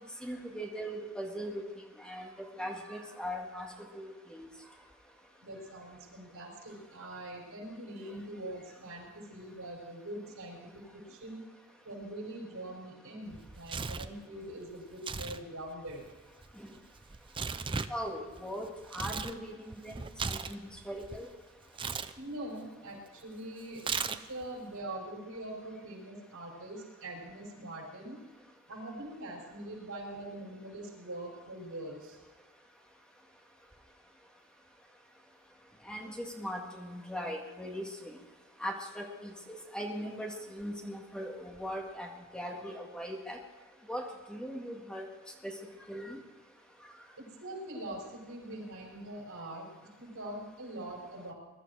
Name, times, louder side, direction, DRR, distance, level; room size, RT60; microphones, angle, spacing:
voice 1, 0.2-1.6 2.0-3.7 3.9-4.5 16.6-16.7 17.9-19.9 20.3-20.6 20.9-21.3 35.9-38.1 38.6-43.4 43.9-45.1 45.4-45.5 45.9-46.2, equal, 5° left, 1 dB, 1.8 m, -39 dB
voice 2, 5.4-11.4 11.8-16.1 22.1-23.8 24.2-28.2 28.7-32.2 47.2-49.7 50.0-51.3, right 1 dB, 85° right, -1 dB, 5.7 m, -43 dB
Tearing, 13.3-14.2 14.9-15.4 15.7-19.4 19.7-21.2 21.7-22.1 23.8-24.4, right 5 dB, 25° right, 0.5 m, -37 dB
21.5 x 12.5 x 4.8 m, 1.3 s
head